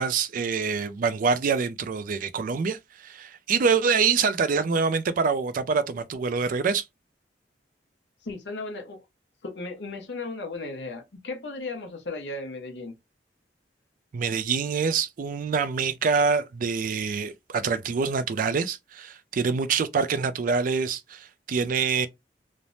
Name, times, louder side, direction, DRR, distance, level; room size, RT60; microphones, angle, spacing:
voice 1, 0.0-6.8 14.1-22.1, right 5 dB, 50° right, 0.3 m, -25 dB
voice 2, 8.2-9.0 9.4-13.0, left 3 dB, 75° left, 0.8 m, -35 dB
3.2 x 2.0 x 2.6 m
head